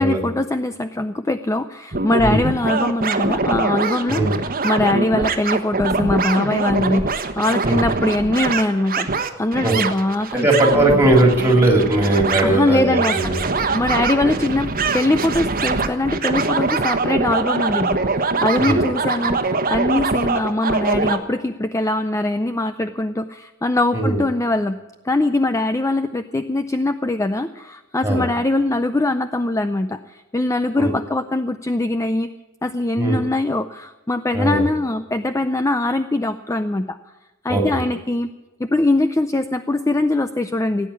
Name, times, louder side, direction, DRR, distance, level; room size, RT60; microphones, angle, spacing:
voice 1, 0.0-9.1 9.4-10.9 12.4-14.7 14.9-24.8 25.0-32.3 32.6-37.0 37.4-38.3 38.6-40.9, left 2 dB, 15° left, 10 dB, 0.4 m, -22 dB
sound 1, 1.9-21.2, right 3 dB, 40° right, 1.2 m, -23 dB
voice 2, 10.3-13.3 18.6-18.8 23.9-24.2 28.0-28.2 30.8-30.9 33.0-33.2 34.3-34.6 37.5-37.8, right 2 dB, 10° right, 1 dB, 3.1 m, -18 dB
17.5 x 9.2 x 8.5 m, 1.1 s
head